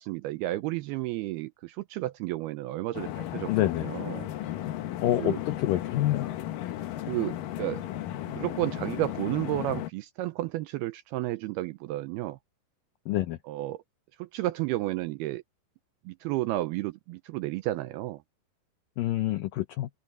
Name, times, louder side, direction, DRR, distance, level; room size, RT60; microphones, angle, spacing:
voice 1, 0.0-3.5 3.8-4.3 5.2-5.4 7.1-7.8 8.3-12.4 13.5-13.8 14.2-15.4 16.1-18.2, right 16 dB, 85° right, 2.3 m, -32 dB
sound 1, 2.9-9.9, left 13 dB, 70° left, 2.3 m, -35 dB
voice 2, 3.5-3.9 5.0-6.3 13.1-13.4 19.0-19.9, left 14 dB, 85° left, 2.0 m, -27 dB
omnidirectional pair, 5.0 m